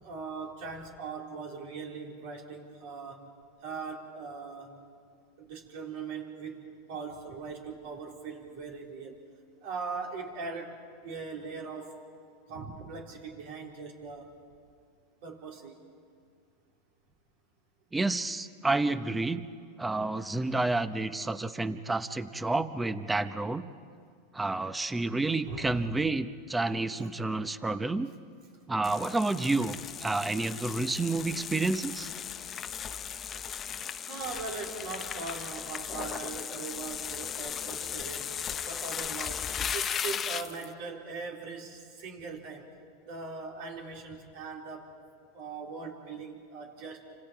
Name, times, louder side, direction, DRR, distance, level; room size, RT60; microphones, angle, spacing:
voice 1, 0.0-3.3 3.6-4.8 5.4-9.2 9.6-12.0 12.5-14.3 15.2-15.8 25.5-25.9 27.0-27.1 33.4-33.5 34.1-38.4 38.6-42.7 43.0-44.9 45.3-47.2, right 4 dB, 65° right, 0 dB, 4.1 m, -40 dB
voice 2, 17.9-19.4 19.8-23.6 24.3-28.1 28.7-32.1, right 2 dB, 10° right, 12 dB, 0.9 m, -30 dB
sound 1, 28.8-40.7, left 8 dB, 30° left, 0.8 m, -37 dB
30.0 x 26.0 x 4.7 m, 2.2 s
hypercardioid pair, 110°, 0 cm